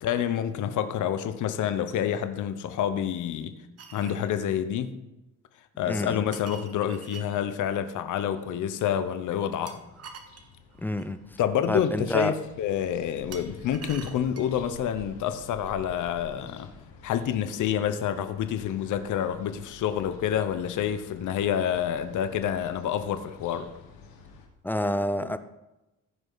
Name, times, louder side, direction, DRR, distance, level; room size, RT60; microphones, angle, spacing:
voice 1, 0.0-3.6 3.9-4.9 5.8-9.8 11.4-16.7 17.0-23.7, left 9 dB, 65° left, 0.9 m, -28 dB
sound 1, 3.8-4.3 6.3-7.3 9.7-11.1 13.3-14.7, right 6 dB, 45° right, 1.2 m, -46 dB
voice 2, 5.9-6.2 10.8-11.2 11.7-12.3 24.6-25.4, left 1 dB, 5° left, 0.5 m, -28 dB
sound 2, 8.3-24.5, left 3 dB, 85° left, 1.6 m, -50 dB
15.0 x 5.1 x 4.0 m
cardioid pair, 100°, 33 cm